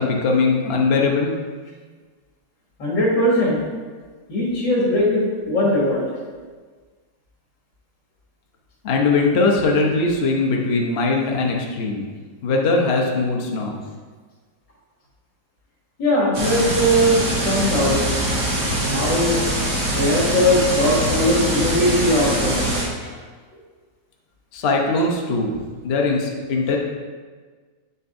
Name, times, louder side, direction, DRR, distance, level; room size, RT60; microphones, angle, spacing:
voice 1, 0.0-1.4 8.8-12.1 12.4-13.7 24.5-25.5 25.8-26.8, left 3 dB, 50° left, -1 dB, 0.7 m, -20 dB
voice 2, 2.8-3.6 4.3-6.0 16.0-18.4 18.9-19.4 19.9-22.6 23.0-23.1, equal, 65° left, -4 dB, 2.4 m, -20 dB
sound 1, 16.3-22.8, right 1 dB, 60° right, 2.7 m, -23 dB
8.1 x 6.8 x 2.6 m, 1.5 s
omnidirectional pair, 2.1 m